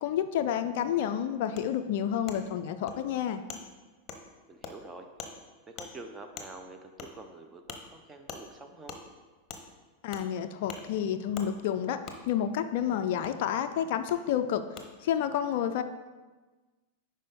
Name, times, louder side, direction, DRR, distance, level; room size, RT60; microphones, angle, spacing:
voice 1, 0.0-3.4 10.0-14.6 15.0-15.8, left 9 dB, 50° left, 8 dB, 0.3 m, -30 dB
Wood, 1.6-1.7 2.3-2.4 2.9-3.0 3.5-3.6 4.1-4.2 4.6-4.7 5.2-5.3 5.8-5.9 6.4-6.5 7.0-7.1 7.7-7.8 8.3-8.4 8.9-9.0 9.5-9.6 10.1-10.3 10.7-10.8 11.3-11.5 12.1-12.2 13.2-13.3 14.1-14.2 14.8-14.9, left 5 dB, 30° left, 0.9 m, -42 dB
voice 2, 4.5-5.1 5.7-9.0, right 2 dB, 15° right, 6 dB, 0.7 m, -47 dB
10.5 x 4.3 x 3.6 m, 1.3 s
figure-of-eight pair, 90°, 0 cm